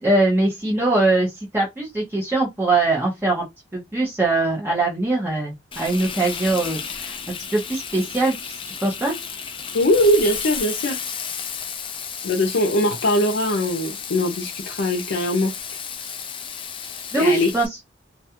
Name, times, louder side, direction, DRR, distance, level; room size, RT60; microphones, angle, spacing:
voice 1, 0.0-3.4 3.7-7.2 7.5-9.2 17.1-17.7, right 2 dB, 15° right, 0.7 m, -22 dB
Frying (food), 5.7-17.7, left 6 dB, 30° left, 0.3 m, -33 dB
voice 2, 9.7-11.0 12.2-15.5 17.2-17.5, left 1 dB, 80° left, 0.6 m, -21 dB
2.4 x 2.2 x 2.8 m
head